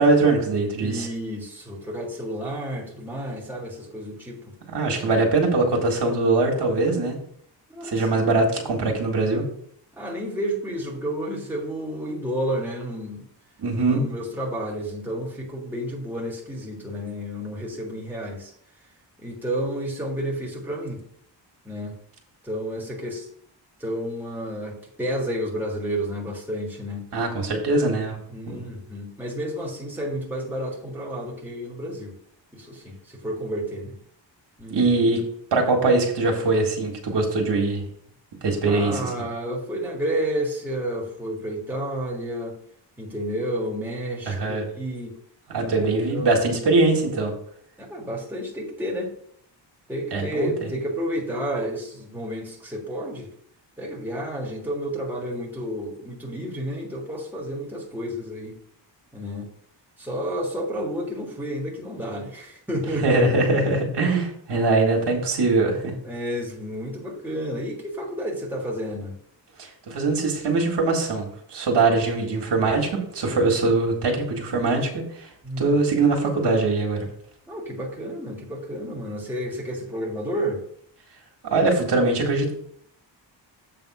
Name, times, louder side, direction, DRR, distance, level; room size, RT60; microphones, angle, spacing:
voice 1, 0.0-1.1 4.7-7.2 7.8-9.5 13.6-14.0 27.1-28.2 28.5-28.6 34.7-35.2 35.5-37.8 38.4-39.1 44.3-44.6 45.5-47.3 50.1-50.5 63.0-65.9 69.6-75.3 75.6-77.1 81.4-82.5, right 3 dB, 65° right, 1 dB, 1.9 m, -22 dB
voice 2, 0.8-4.4 7.7-8.0 9.9-13.3 13.9-18.5 19.2-21.0 21.6-21.9 22.4-23.3 23.8-27.1 28.3-32.1 32.5-33.0 33.2-33.9 34.6-34.9 38.7-42.5 43.0-45.1 45.6-46.3 47.8-49.1 49.9-53.3 53.8-58.5 59.1-59.5 60.0-63.2 66.0-69.1 75.4-75.7 77.5-80.6, equal, 5° right, -1 dB, 1.7 m, -31 dB
7.7 x 3.6 x 6.1 m, 0.66 s
wide cardioid pair, 120°, 44 cm